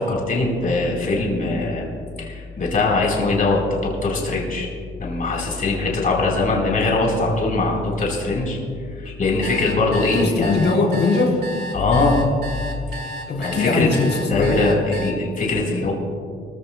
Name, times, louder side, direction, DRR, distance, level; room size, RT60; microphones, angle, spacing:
voice 1, 0.0-1.8 2.2-4.7 5.0-8.6 9.0-10.6 11.7-12.2 13.4-13.9 14.3-15.9, left 3 dB, 40° left, -2 dB, 4.0 m, -21 dB
sound 1, 9.2-15.1, right 1 dB, 50° right, 1.9 m, -33 dB
voice 2, 10.0-11.4 13.3-14.7, left 3 dB, 55° left, 0 dB, 3.4 m, -21 dB
25.0 x 14.5 x 2.2 m, 2.2 s
cardioid pair, 125°, 21 cm